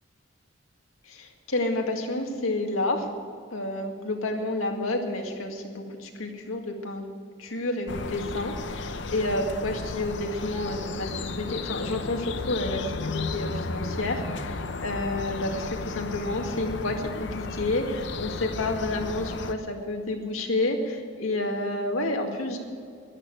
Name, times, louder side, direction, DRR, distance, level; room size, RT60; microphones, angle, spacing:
voice 1, 1.1-3.1 3.5-7.1 7.4-22.6, left 2 dB, 90° left, 2 dB, 2.1 m, -30 dB
sound 1, 7.9-19.5, left 3 dB, 60° left, 0.7 m, -34 dB
12.5 x 11.5 x 7.7 m, 2.3 s
head